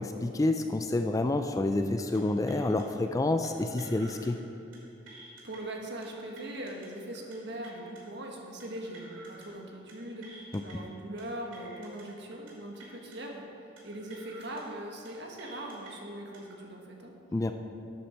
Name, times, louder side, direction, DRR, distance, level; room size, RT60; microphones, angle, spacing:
voice 1, 0.0-4.4 17.3-17.5, left 2 dB, 15° left, 7 dB, 0.3 m, -28 dB
sound 1, 2.0-2.2 2.5-2.8 3.4-4.3 4.6-4.8 5.1-5.6 6.0-6.9 7.1-7.4 7.6-8.0 8.6-9.5 9.7-9.9 10.2-10.7 11.2-12.0 12.3-12.5 12.8-13.2 13.8-14.6 14.9-15.1 15.4-15.9 16.3-16.5, right 2 dB, 80° right, 2.6 m, -51 dB
voice 2, 5.2-17.1, right 1 dB, 60° right, 1 dB, 1.5 m, -41 dB
12.0 x 8.6 x 4.4 m, 2.7 s
head